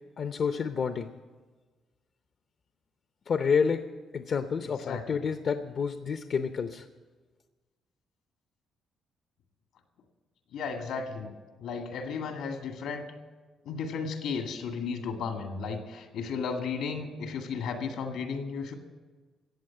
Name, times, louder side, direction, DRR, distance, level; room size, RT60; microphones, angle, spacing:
voice 1, 0.2-1.1 3.3-3.8 4.1-6.8, left 6 dB, 55° left, 9 dB, 0.6 m, -29 dB
voice 2, 4.6-5.3 10.5-11.3 11.6-13.1 13.7-18.7, left 5 dB, 85° left, 5 dB, 2.0 m, -34 dB
14.5 x 8.5 x 9.6 m, 1.4 s
cardioid pair, 90°, 0 cm